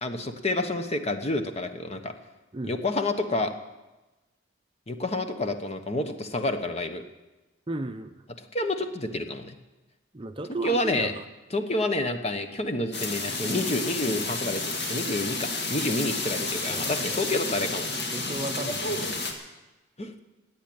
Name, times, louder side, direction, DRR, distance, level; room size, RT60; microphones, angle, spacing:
voice 1, 0.0-2.1 2.6-3.5 4.9-7.0 8.5-9.5 10.6-11.1 11.5-14.6 14.9-17.9 20.0-20.1, left 2 dB, 30° left, 7 dB, 1.1 m, -29 dB
voice 2, 7.7-8.2 10.1-11.2 16.7-17.2 18.1-19.3, right 2 dB, 25° right, 7 dB, 0.7 m, -35 dB
sound 1, 12.9-19.3, left 2 dB, 55° left, 2.1 m, -31 dB
17.0 x 8.9 x 8.7 m, 1.1 s
head